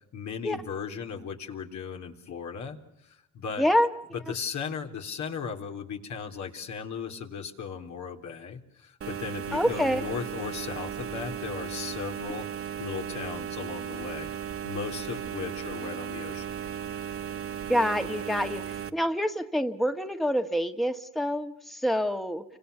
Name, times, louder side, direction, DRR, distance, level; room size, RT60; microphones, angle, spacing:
voice 1, 0.0-3.6 4.1-12.4 12.8-16.5, left 6 dB, 70° left, 3 dB, 3.8 m, -37 dB
voice 2, 3.6-3.9 9.5-10.0 17.7-18.6 18.9-22.4, equal, ahead, 7 dB, 1.7 m, -26 dB
sound 1, 9.0-18.9, right 9 dB, 45° right, 1.7 m, -36 dB
29.5 x 25.5 x 6.9 m, 0.80 s
cardioid pair, 90°, 30 cm